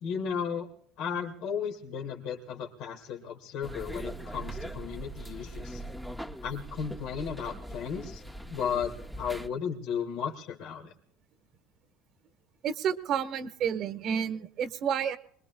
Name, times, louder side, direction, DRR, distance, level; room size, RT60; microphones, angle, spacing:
voice 1, 0.0-0.7 1.0-5.8 6.4-8.9 9.2-10.9, left 7 dB, 65° left, 1 dB, 1.9 m, -34 dB
sound 1, 3.6-9.5, right 1 dB, 5° left, 0.9 m, -41 dB
voice 2, 12.6-15.2, right 8 dB, 50° right, 10 dB, 1.3 m, -30 dB
25.0 x 21.0 x 2.3 m, 0.64 s
supercardioid pair, 110°, 0 cm